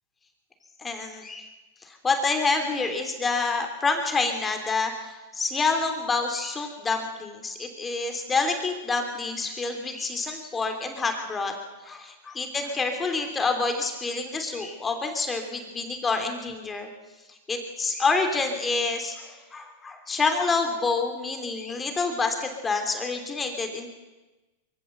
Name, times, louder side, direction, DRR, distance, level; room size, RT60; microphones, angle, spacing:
voice 1, 0.8-1.5 1.8-4.9 5.4-11.5 11.8-16.9 17.5-23.9, left 4 dB, 15° left, 5 dB, 3.0 m, -27 dB
22.5 x 16.0 x 7.9 m, 1.1 s
hypercardioid pair, 120°, 0 cm